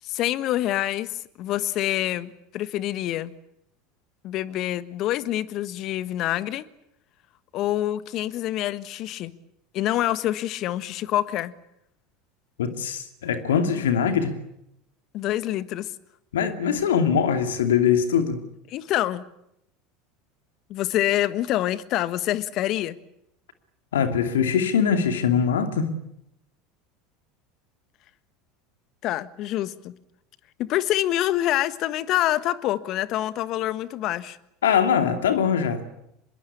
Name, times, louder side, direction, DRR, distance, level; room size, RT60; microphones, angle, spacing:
voice 1, 0.0-3.3 4.2-6.6 7.5-9.3 9.7-11.5 15.1-15.9 18.7-19.2 20.7-23.0 29.0-29.9 30.6-34.4, left 14 dB, 50° left, 1.4 m, -26 dB
voice 2, 12.6-14.3 16.3-18.4 23.9-25.9 34.6-35.9, left 7 dB, 75° left, 2.6 m, -22 dB
25.5 x 21.5 x 8.6 m
hypercardioid pair, 75°, 0 cm